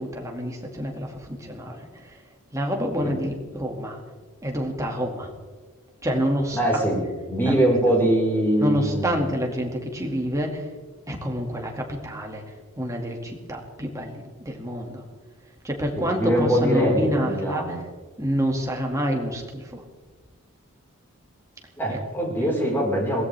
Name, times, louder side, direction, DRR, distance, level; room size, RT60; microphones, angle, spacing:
voice 1, 0.0-4.0 4.4-5.3 6.0-6.8 7.5-7.7 8.6-10.7 11.1-15.0 15.6-17.8 18.2-19.9 21.9-22.0 22.4-22.5, equal, 15° right, 1 dB, 2.1 m, -28 dB
voice 2, 6.5-7.0 7.3-9.2 16.0-17.8 21.8-23.2, right 1 dB, 10° left, -2 dB, 4.5 m, -22 dB
22.0 x 17.5 x 3.4 m, 1.4 s
head